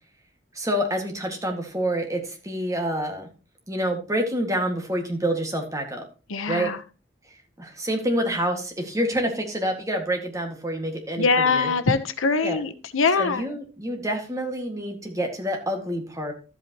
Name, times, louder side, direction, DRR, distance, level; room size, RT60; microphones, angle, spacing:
voice 1, 0.5-3.3 3.7-6.0 6.5-6.7 7.6-11.7 12.4-12.6 13.2-16.3, equal, 15° right, 2 dB, 1.9 m, -27 dB
voice 2, 6.3-6.8 11.2-13.4, left 4 dB, 80° left, 10 dB, 0.9 m, -23 dB
12.5 x 8.2 x 3.0 m, 0.33 s
head